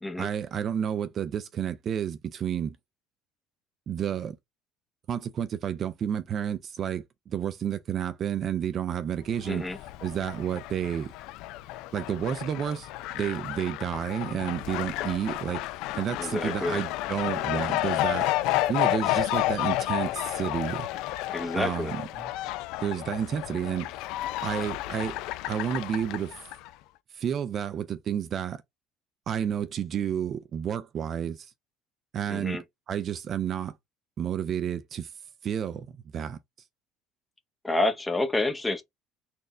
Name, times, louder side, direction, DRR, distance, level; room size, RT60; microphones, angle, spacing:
voice 1, 0.2-2.8 3.9-4.4 5.1-9.6 10.0-11.1 11.9-12.9 13.1-15.6 15.9-18.3 18.7-20.9 21.6-22.3 22.8-23.9 24.4-25.2 25.5-26.4 27.1-28.6 29.3-31.5 32.1-32.6 32.9-33.7 34.2-35.1 35.4-35.9 36.1-36.4, right 9 dB, 40° right, 0.4 m, -30 dB
Fowl, 9.3-26.7, left 16 dB, 70° left, 0.3 m, -31 dB
voice 2, 9.5-9.8 16.2-16.8 21.3-22.0 32.3-32.6 37.6-38.8, left 2 dB, 10° left, 0.7 m, -28 dB
4.2 x 2.6 x 3.1 m
cardioid pair, 145°, 0 cm